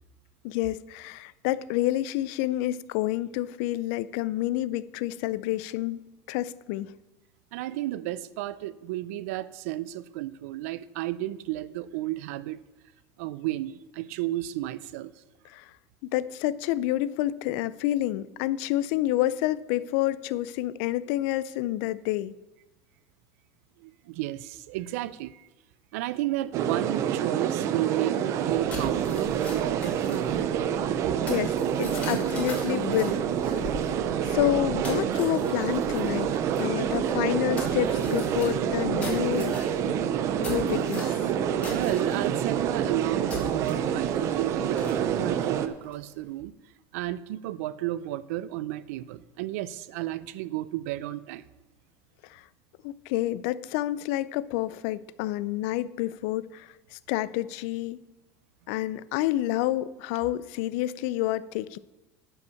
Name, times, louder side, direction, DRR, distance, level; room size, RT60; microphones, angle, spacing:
voice 1, 0.4-6.0 6.3-6.9 15.5-15.7 16.0-22.3 31.3-33.2 34.2-36.3 36.6-39.6 39.9-40.0 40.4-41.2 52.3-52.4 52.8-58.0 58.7-61.8, left 15 dB, 65° left, 0.4 m, -29 dB
voice 2, 7.5-12.6 13.2-15.1 23.8-25.5 25.9-30.4 41.7-46.5 46.9-51.4, right 15 dB, 90° right, 0.5 m, -33 dB
sound 1, 26.5-45.7, right 9 dB, 40° right, 0.6 m, -27 dB
sound 2, 28.3-46.3, left 3 dB, 15° left, 2.2 m, -42 dB
10.5 x 5.4 x 7.0 m
cardioid pair, 165°, 8 cm